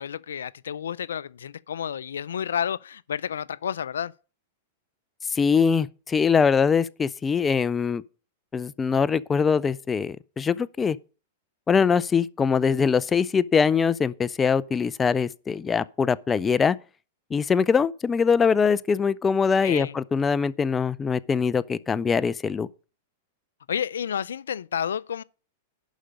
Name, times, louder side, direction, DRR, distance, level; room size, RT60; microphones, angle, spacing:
voice 1, 0.0-4.1 19.6-19.9 23.7-25.2, left 8 dB, 90° left, 0.4 m, -30 dB
voice 2, 5.3-8.0 8.5-11.0 11.7-16.8 17.3-22.7, left 6 dB, 15° left, 0.4 m, -22 dB
11.5 x 5.1 x 6.4 m
hypercardioid pair, 125°, 0 cm